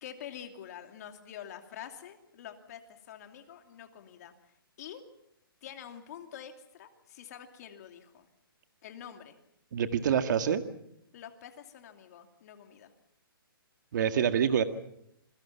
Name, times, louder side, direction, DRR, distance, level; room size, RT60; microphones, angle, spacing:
voice 1, 0.0-4.5 4.8-5.1 5.6-8.3 8.8-9.4 11.1-12.9, left 9 dB, 45° left, 6 dB, 2.7 m, -47 dB
voice 2, 9.7-10.6 13.9-14.6, right 8 dB, 50° right, 9 dB, 1.9 m, -26 dB
27.5 x 23.0 x 5.8 m, 0.76 s
hypercardioid pair, 155°, 12 cm